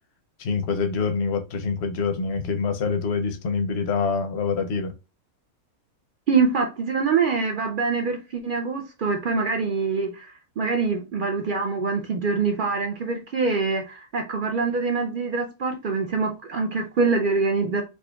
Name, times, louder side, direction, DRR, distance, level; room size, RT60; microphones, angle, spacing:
voice 1, 0.4-4.9, left 5 dB, 65° left, 0.7 m, -25 dB
voice 2, 6.3-17.8, right 4 dB, 70° right, 0.4 m, -24 dB
4.2 x 2.7 x 2.3 m
omnidirectional pair, 1.4 m